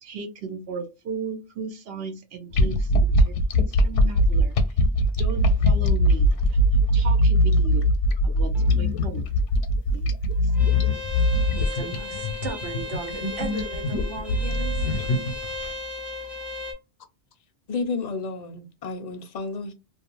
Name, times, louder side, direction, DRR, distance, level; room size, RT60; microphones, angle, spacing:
voice 1, 0.0-3.3 3.8-4.6 5.2-6.3 6.7-7.9 8.2-9.3 9.9-10.1, right 5 dB, 65° right, 0.7 m, -35 dB
sound 1, 2.5-15.6, equal, 85° left, 0.9 m, -21 dB
sound 2, 8.4-16.7, left 2 dB, ahead, 0.7 m, -37 dB
voice 2, 11.5-14.9, right 4 dB, 80° right, 1.2 m, -37 dB
voice 3, 17.7-19.7, left 4 dB, 65° left, 0.4 m, -31 dB
2.5 x 2.3 x 2.8 m
omnidirectional pair, 1.2 m